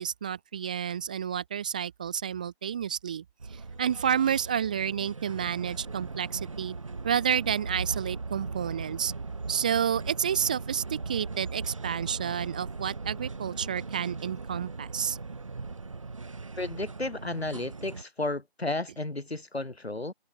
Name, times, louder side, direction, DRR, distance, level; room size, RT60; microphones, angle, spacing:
voice 1, 0.0-3.2 3.5-6.7 7.0-9.1 9.5-15.2, right 8 dB, 10° right, 2.2 m, -30 dB
sound 1, 3.4-18.0, right 4 dB, 30° right, 3.8 m, -39 dB
voice 2, 16.6-20.1, left 2 dB, 75° left, 5.6 m, -33 dB
open air
figure-of-eight pair, 175°, 32 cm